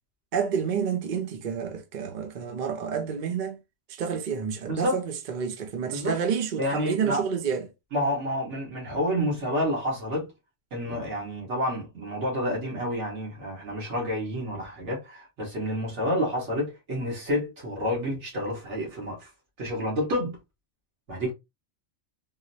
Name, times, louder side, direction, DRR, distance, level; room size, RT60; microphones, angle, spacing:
voice 1, 0.3-3.6 3.9-7.7, right 7 dB, 50° right, 0.6 m, -29 dB
voice 2, 4.7-5.0 5.9-6.2 6.6-7.2 7.9-10.3 10.7-19.3 19.6-20.4 21.1-21.3, equal, 70° right, 1.7 m, -29 dB
3.7 x 2.1 x 2.6 m
omnidirectional pair, 1.2 m